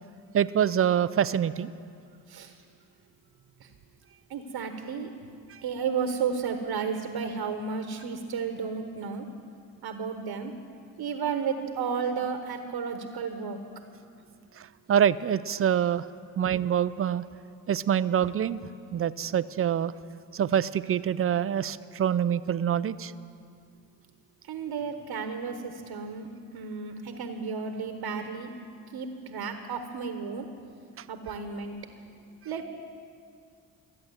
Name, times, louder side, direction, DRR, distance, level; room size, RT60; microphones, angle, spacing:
voice 1, 0.3-1.7 14.9-16.0 16.4-17.2 17.7-18.6 18.9-19.9 20.3-23.1, right 9 dB, 30° right, 16 dB, 0.5 m, -25 dB
voice 2, 4.3-5.1 5.6-9.2 9.8-10.5 11.0-13.6 24.5-26.3 26.5-28.5 28.9-30.5 31.1-31.8 32.4-32.7, right 6 dB, 60° right, 6 dB, 1.2 m, -32 dB
14.0 x 8.6 x 8.0 m, 2.4 s
supercardioid pair, 55°, 44 cm